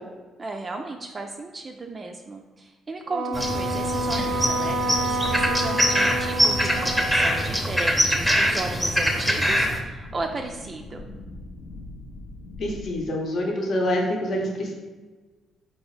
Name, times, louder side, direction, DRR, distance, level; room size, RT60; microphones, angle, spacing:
voice 1, 0.4-11.0, right 3 dB, 35° right, 3 dB, 0.3 m, -35 dB
Wind instrument woodwind instrument, 3.1-7.6, right 2 dB, 85° right, 0.6 m, -28 dB
sound 1, 3.3-13.0, left 2 dB, 85° left, 0.5 m, -41 dB
sound 2, 3.3-9.8, equal, ahead, 0.7 m, -23 dB
voice 2, 12.6-14.7, left 1 dB, 55° left, 0 dB, 0.8 m, -26 dB
4.2 x 2.8 x 3.1 m, 1.3 s
cardioid pair, 90°, 0 cm